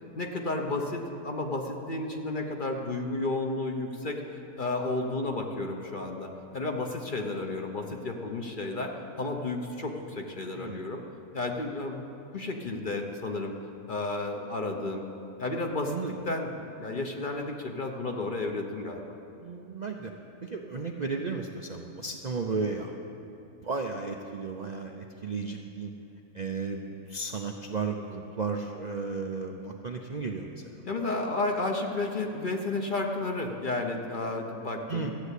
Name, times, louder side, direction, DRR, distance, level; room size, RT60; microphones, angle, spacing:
voice 1, 0.1-11.0 11.3-13.6 13.9-15.0 15.4-15.9 16.3-19.0 30.8-35.1, left 2 dB, 40° left, 2 dB, 0.9 m, -32 dB
voice 2, 15.8-16.2 19.4-20.1 20.4-22.9 23.4-25.9 26.3-30.9 34.9-35.1, right 4 dB, 45° right, 2 dB, 0.6 m, -34 dB
13.5 x 8.0 x 8.2 m, 2.8 s
omnidirectional pair, 1.5 m